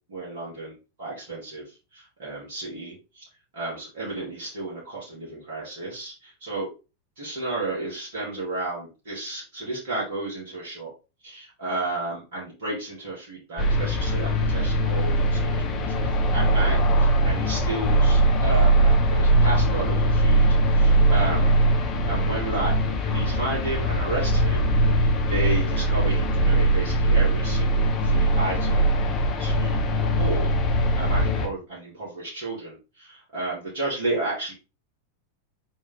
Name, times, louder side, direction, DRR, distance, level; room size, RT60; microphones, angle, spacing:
voice 1, 0.1-3.2 3.5-6.7 7.2-10.9 11.2-21.6 22.1-22.7 23.0-24.7 25.0-30.5 30.9-34.5, right 2 dB, 55° right, -6 dB, 3.0 m, -32 dB
sound 1, 13.6-31.5, right 1 dB, 30° left, 1.4 m, -21 dB
5.3 x 5.2 x 3.8 m, 0.30 s
figure-of-eight pair, 90°, 0 cm